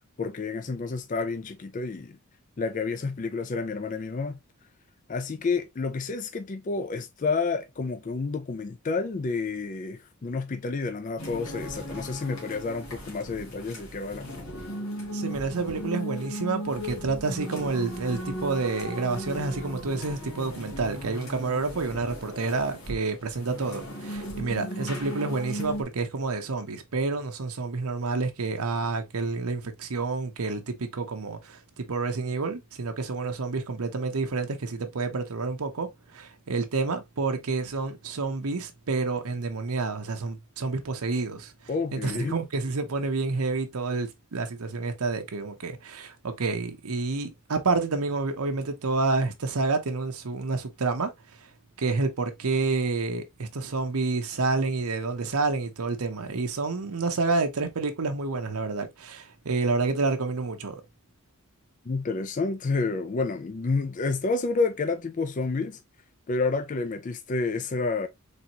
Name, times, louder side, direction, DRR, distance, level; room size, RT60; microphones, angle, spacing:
voice 1, 0.2-2.2 2.6-4.4 5.1-14.3 14.5-14.7 41.7-42.4 61.9-65.8 66.3-68.1, left 4 dB, 35° left, 0.4 m, -29 dB
sound 1, 11.2-25.8, equal, 70° left, 2.1 m, -37 dB
voice 2, 15.1-41.5 41.9-51.1 51.8-60.8, right 3 dB, 90° right, 0.8 m, -29 dB
4.1 x 3.4 x 2.8 m
head